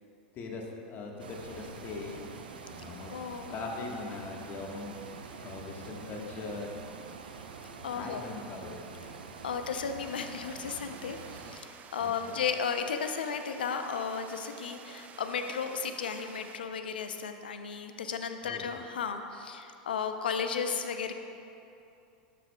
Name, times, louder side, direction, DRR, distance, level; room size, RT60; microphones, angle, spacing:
voice 1, 0.3-2.3 2.7-3.1 3.5-5.0 5.4-6.7 7.9-8.8 12.0-12.4 18.4-18.7, left 3 dB, 40° left, 0 dB, 1.3 m, -40 dB
sound 1, 1.2-11.6, right 5 dB, 85° right, 0.6 m, -46 dB
voice 2, 3.1-3.5 7.8-8.3 9.4-21.1, left 6 dB, 85° left, 7 dB, 0.5 m, -34 dB
sound 2, 10.0-16.6, right 7 dB, 30° right, 0.4 m, -51 dB
12.5 x 7.6 x 2.2 m, 2.7 s
hypercardioid pair, 100°, 5 cm